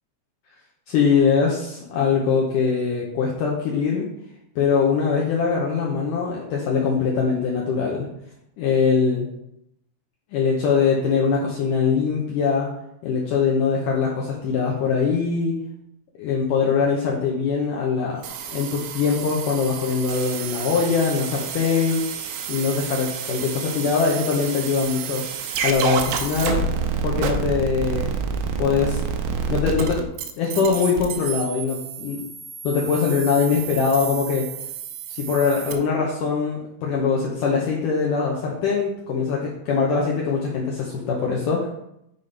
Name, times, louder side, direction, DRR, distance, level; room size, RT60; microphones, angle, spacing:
voice 1, 0.9-4.1 4.6-8.1 8.6-9.3 10.3-12.7 13.0-15.5 16.2-18.2 18.5-22.0 22.5-25.2 25.6-26.6 27.0-28.1 28.6-29.0 29.5-30.1 30.4-32.3 32.6-34.5 35.1-41.7, left 5 dB, 85° left, -3 dB, 1.8 m, -22 dB
sound 1, 18.2-35.7, right 6 dB, 85° right, 3.0 m, -29 dB
7.3 x 4.2 x 5.1 m, 0.79 s
omnidirectional pair, 5.2 m